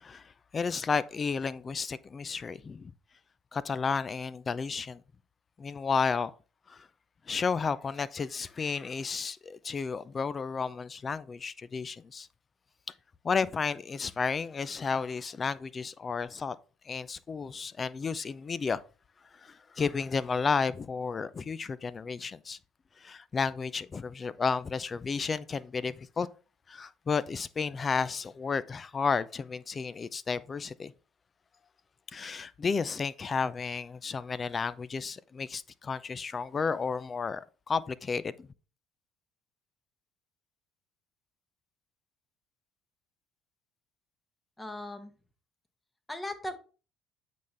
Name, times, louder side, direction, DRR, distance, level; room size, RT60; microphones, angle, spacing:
voice 1, 0.0-2.9 3.5-5.0 5.6-6.3 6.7-6.9 7.3-12.3 13.2-16.6 16.8-18.8 19.3-22.6 23.0-26.3 26.7-30.9 32.1-38.5, left 5 dB, 35° left, 0.5 m, -32 dB
voice 2, 44.6-45.1 46.1-46.6, left 1 dB, 15° left, 1.4 m, -38 dB
8.3 x 4.2 x 3.4 m
hypercardioid pair, 65°, 0 cm